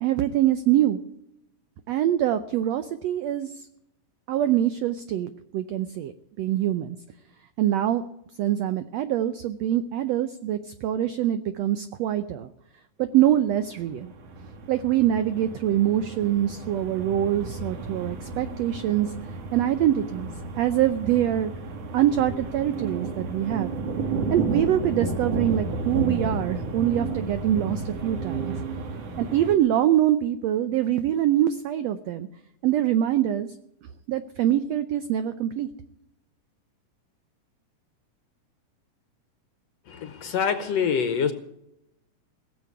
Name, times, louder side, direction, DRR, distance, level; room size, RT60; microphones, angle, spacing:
voice 1, 0.0-1.0 1.9-3.7 4.3-7.0 7.6-8.0 8.4-12.5 13.0-14.1 14.7-19.1 19.5-20.3 20.6-21.5 21.9-23.7 24.3-28.5 29.2-32.3 32.6-33.5 34.1-35.7, right 11 dB, 80° right, 11 dB, 1.5 m, -24 dB
sound 1, 13.7-29.5, right 3 dB, 55° right, 2.5 m, -32 dB
voice 2, 39.9-41.3, left 7 dB, 65° left, 9 dB, 1.7 m, -25 dB
17.5 x 7.6 x 9.5 m, 0.81 s
omnidirectional pair, 3.8 m